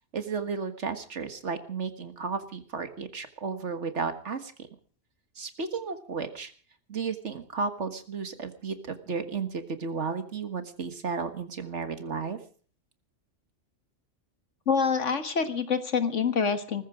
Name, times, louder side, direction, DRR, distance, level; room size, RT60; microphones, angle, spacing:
voice 1, 0.1-4.5 5.4-6.5 6.9-12.4, right 5 dB, 65° right, 8 dB, 1.9 m, -33 dB
voice 2, 14.7-16.9, left 6 dB, 70° left, 9 dB, 1.8 m, -26 dB
19.5 x 15.0 x 5.0 m, 0.42 s
omnidirectional pair, 1.3 m